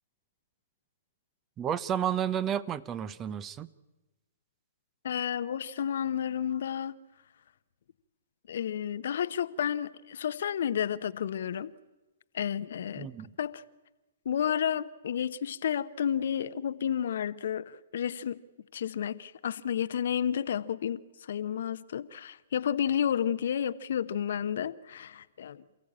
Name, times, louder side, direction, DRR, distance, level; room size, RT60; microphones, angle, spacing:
voice 1, 1.6-3.7 13.0-13.3, right 9 dB, 20° right, 0.8 m, -31 dB
voice 2, 5.0-7.0 8.5-11.7 12.3-13.1 13.4-13.6 14.2-18.4 18.7-25.6, left 9 dB, 60° left, 0.8 m, -31 dB
28.0 x 15.5 x 8.7 m
figure-of-eight pair, 120°, 0 cm